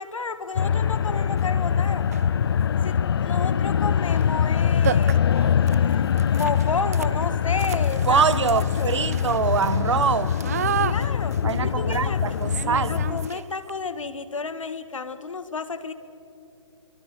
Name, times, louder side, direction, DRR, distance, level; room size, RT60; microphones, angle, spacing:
voice 1, 0.0-2.1 2.8-5.2 5.6-8.2 8.5-9.0 10.8-11.4 11.6-12.4 12.9-15.9, left 4 dB, 80° left, 12 dB, 1.8 m, -32 dB
sound 1, 0.6-13.3, left 8 dB, 50° left, 0.5 m, -23 dB
sound 2, 1.4-1.5 2.0-2.4 4.1-4.3 4.5-4.6 4.8-13.7, right 9 dB, 30° right, 0.5 m, -33 dB
sound 3, 5.4-8.3, left 9 dB, 15° left, 2.6 m, -48 dB
voice 2, 8.1-10.4 11.4-13.0, right 6 dB, 65° right, 15 dB, 1.2 m, -24 dB
26.0 x 24.0 x 6.8 m, 2.8 s
hypercardioid pair, 160°, 16 cm